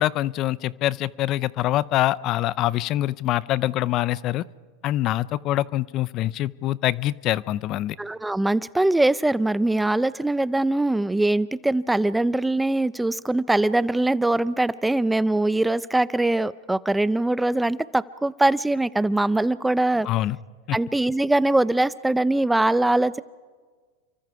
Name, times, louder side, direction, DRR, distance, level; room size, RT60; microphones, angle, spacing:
voice 1, 0.0-4.4 4.8-8.0 20.0-20.4 20.7-20.8, left 14 dB, 45° left, 21 dB, 0.5 m, -24 dB
voice 2, 8.0-20.1 20.7-23.2, right 2 dB, 5° right, 18 dB, 0.5 m, -22 dB
29.0 x 24.5 x 4.8 m, 1.5 s
hypercardioid pair, 110°, 0 cm